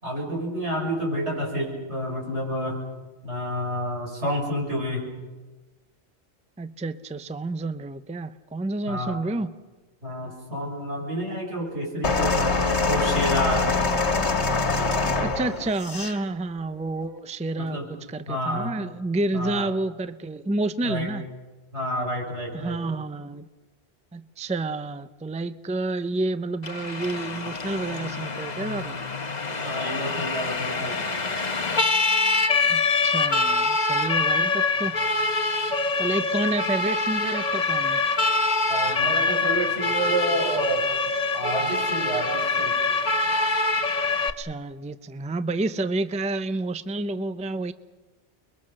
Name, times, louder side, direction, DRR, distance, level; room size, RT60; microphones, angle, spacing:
voice 1, 0.0-2.8 3.2-5.0 8.8-9.2 10.0-13.7 17.6-17.9 18.3-18.7 19.3-19.7 20.8-21.1 21.7-22.8 29.6-31.2 38.7-40.9 41.3-42.8, equal, 85° right, -1 dB, 6.8 m, -29 dB
voice 2, 6.6-9.5 15.2-21.3 22.5-23.5 24.1-29.0 32.7-34.9 36.0-38.0 44.4-47.7, right 2 dB, 10° right, 12 dB, 0.5 m, -29 dB
sound 1, 12.0-16.2 17.0-17.2, left 3 dB, 80° left, 2.0 m, -24 dB
Siren, 26.6-44.3, left 3 dB, 40° left, 1.3 m, -25 dB
30.0 x 22.5 x 6.5 m, 1.2 s
omnidirectional pair, 1.1 m